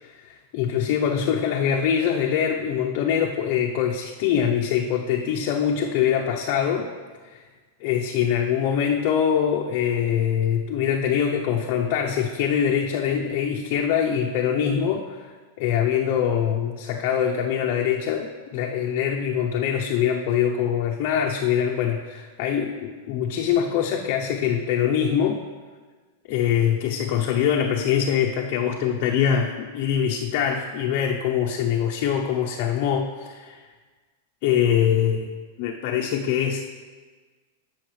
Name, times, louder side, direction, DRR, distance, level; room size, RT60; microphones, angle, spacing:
voice 1, 0.0-6.9 7.2-7.4 7.8-25.4 26.3-33.6 34.4-36.6, left 8 dB, 45° left, 0 dB, 0.6 m, -23 dB
11.5 x 6.4 x 3.2 m, 1.4 s
supercardioid pair, 150°, 0 cm